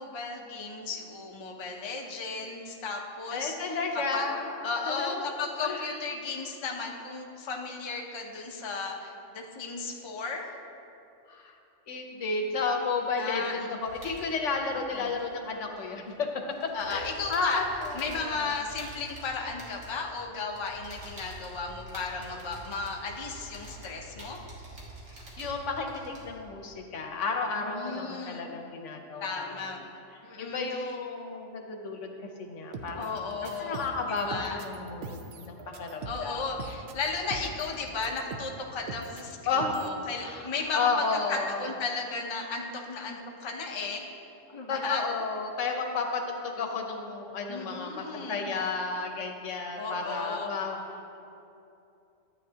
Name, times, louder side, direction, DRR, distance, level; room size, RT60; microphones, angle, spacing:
voice 1, 0.0-4.3 4.6-10.6 13.2-13.8 14.9-15.2 16.7-17.6 17.9-24.4 27.6-28.5 29.2-29.8 30.2-31.0 32.9-34.6 36.0-44.1 44.5-45.0 47.5-48.5 49.8-50.5, left 4 dB, 30° left, 1 dB, 0.6 m, -35 dB
voice 2, 3.3-5.3 5.6-5.9 11.3-11.5 11.9-16.3 16.9-18.5 22.2-22.4 25.4-29.7 30.4-33.1 33.6-35.2 35.5-36.4 39.5-39.9 40.2-40.5 40.7-41.6 44.7-50.8, left 4 dB, 75° left, 3 dB, 1.2 m, -32 dB
Typing on keyboard, 13.8-16.1 16.4-26.5, right 1 dB, 85° right, 1.9 m, -47 dB
sound 1, 32.7-38.6 38.9-39.3 39.6-40.0, right 3 dB, 65° right, 0.8 m, -42 dB
12.0 x 8.3 x 2.8 m, 2.7 s
omnidirectional pair, 1.3 m